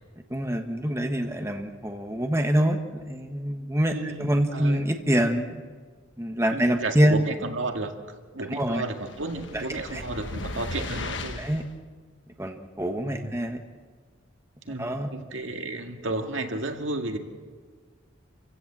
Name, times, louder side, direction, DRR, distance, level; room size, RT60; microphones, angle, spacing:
voice 1, 0.3-2.8 3.1-3.9 4.2-5.6 6.2-7.1 8.5-8.8 9.9-10.0 11.4-11.6 12.4-13.6 14.8-15.1, equal, 15° right, 4 dB, 1.4 m, -25 dB
voice 2, 3.9-4.9 6.5-7.9 8.3-11.4 13.0-13.3 14.7-17.2, right 2 dB, 75° right, 4 dB, 2.0 m, -32 dB
sound 1, 9.1-11.7, left 2 dB, 65° left, 1.6 m, -36 dB
28.0 x 16.0 x 7.5 m, 1.5 s
head